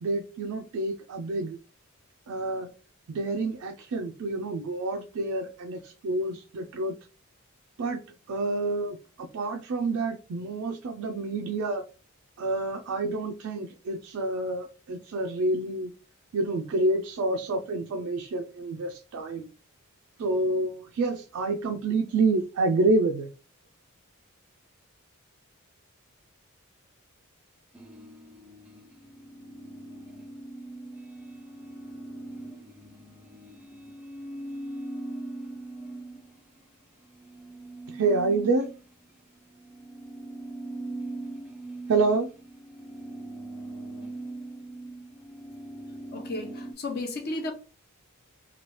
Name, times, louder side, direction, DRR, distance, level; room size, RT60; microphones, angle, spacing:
voice 1, 0.0-1.6 2.3-2.7 3.1-7.0 7.8-8.0 8.3-11.8 12.4-15.9 16.3-19.5 20.2-23.3 37.9-38.7 41.9-42.3, right 2 dB, 75° right, 0.4 m, -28 dB
sound 1, 27.7-36.6 37.0-46.7, right 2 dB, 5° right, 0.4 m, -41 dB
voice 2, 46.1-47.5, left 2 dB, 45° left, 0.6 m, -33 dB
3.0 x 2.3 x 3.0 m
head